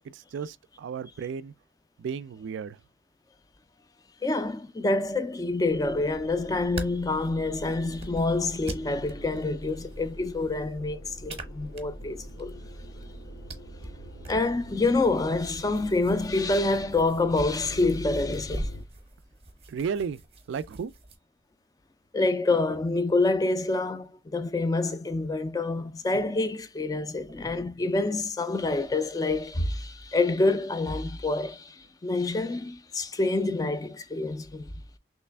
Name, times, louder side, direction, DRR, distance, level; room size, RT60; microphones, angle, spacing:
voice 1, 0.0-1.5 2.0-2.8 19.7-20.2 20.5-20.9, right 6 dB, 80° right, 0.3 m, -33 dB
voice 2, 4.2-12.6 14.3-18.7 22.1-34.7, left 2 dB, 20° left, 0.3 m, -27 dB
sound 1, 5.7-18.8, equal, 90° left, 1.0 m, -43 dB
sound 2, 6.5-21.2, right 2 dB, 30° right, 0.7 m, -44 dB
3.2 x 3.0 x 3.3 m
head